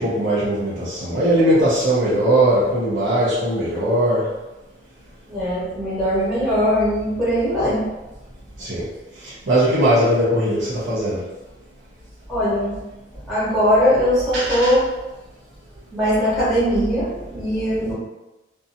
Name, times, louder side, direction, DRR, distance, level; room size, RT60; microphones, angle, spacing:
voice 1, 0.0-4.3 8.6-8.9 9.2-11.2 14.3-14.7, right 1 dB, 75° right, -9 dB, 0.7 m, -19 dB
voice 2, 5.3-8.0 12.3-12.8 13.3-14.9 15.9-17.9, equal, ahead, -11 dB, 1.4 m, -20 dB
2.7 x 2.3 x 2.6 m, 1.0 s
head